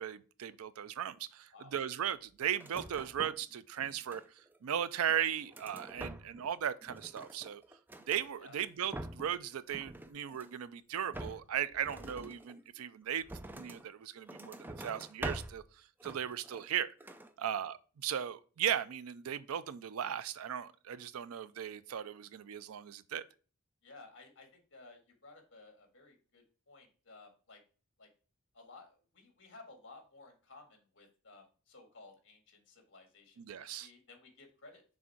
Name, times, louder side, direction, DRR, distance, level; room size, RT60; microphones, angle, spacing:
voice 1, 0.0-4.2 4.6-7.6 8.1-13.2 13.5-15.6 16.0-16.9 17.4-23.2 33.4-33.9, right 9 dB, 80° right, 0.4 m, -37 dB
sound 1, 2.5-3.5 3.8-4.6 5.1-6.5 6.8-8.3 8.7-9.4 9.7-10.6 11.1-13.9 14.3-15.7 16.0-16.8 17.0-17.3, right 1 dB, 10° right, 0.3 m, -46 dB
voice 2, 23.8-27.6 28.0-28.1 28.5-35.0, left 3 dB, 60° left, 1.7 m, -57 dB
6.3 x 3.6 x 4.4 m
head